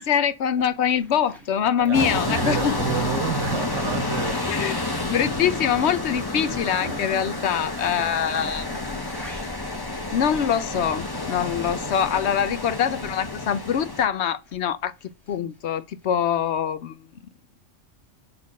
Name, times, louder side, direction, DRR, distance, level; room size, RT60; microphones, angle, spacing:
voice 1, 0.0-2.7 4.5-8.8 10.1-17.1, left 8 dB, 70° left, 1.0 m, -24 dB
sound 1, 0.6-13.5 13.9-16.3, equal, ahead, 1.9 m, -48 dB
voice 2, 1.8-4.5, right 9 dB, 85° right, 1.2 m, -30 dB
sound 2, 1.9-14.1, left 2 dB, 20° left, 1.3 m, -29 dB
6.0 x 4.5 x 6.1 m
omnidirectional pair, 1.2 m